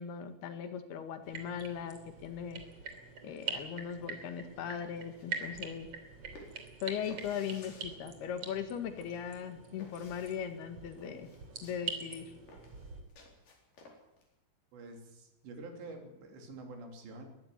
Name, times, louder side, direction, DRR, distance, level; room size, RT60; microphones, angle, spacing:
voice 1, 0.0-2.6 3.2-5.9 6.8-11.3 11.6-12.4, left 8 dB, 70° left, 8 dB, 3.6 m, -39 dB
sound 1, 1.2-13.0, right 5 dB, 40° right, 3.6 m, -44 dB
sound 2, 5.0-14.3, left 2 dB, 50° left, 5.5 m, -56 dB
voice 2, 14.7-17.3, right 2 dB, 80° right, 4 dB, 5.2 m, -47 dB
21.0 x 14.5 x 9.7 m, 0.89 s
omnidirectional pair, 5.0 m